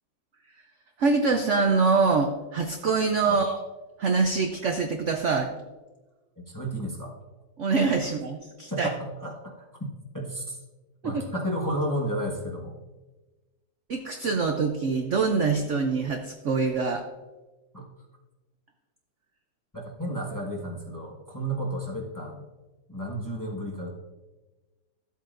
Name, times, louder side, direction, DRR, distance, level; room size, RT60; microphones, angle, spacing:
voice 1, 1.0-3.6 4.0-5.5 7.6-8.9 11.0-11.2 13.9-17.0, right 4 dB, 70° right, 4 dB, 0.7 m, -24 dB
voice 2, 6.5-7.1 8.7-9.5 10.1-10.6 11.0-12.8 17.7-17.8 19.7-22.4 22.9-23.9, right 1 dB, 15° left, -3 dB, 1.0 m, -32 dB
13.0 x 8.2 x 2.5 m, 1.2 s
omnidirectional pair, 2.1 m